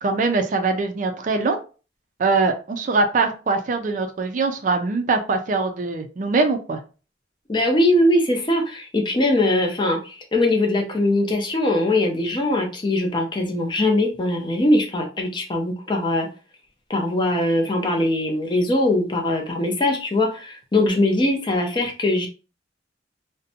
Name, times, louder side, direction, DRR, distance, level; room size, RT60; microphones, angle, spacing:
voice 1, 0.0-1.6 2.2-6.8, right 3 dB, 45° right, 6 dB, 0.4 m, -22 dB
voice 2, 7.5-16.3 16.9-22.3, left 1 dB, 25° left, 2 dB, 0.5 m, -21 dB
2.5 x 2.1 x 2.7 m, 0.34 s
head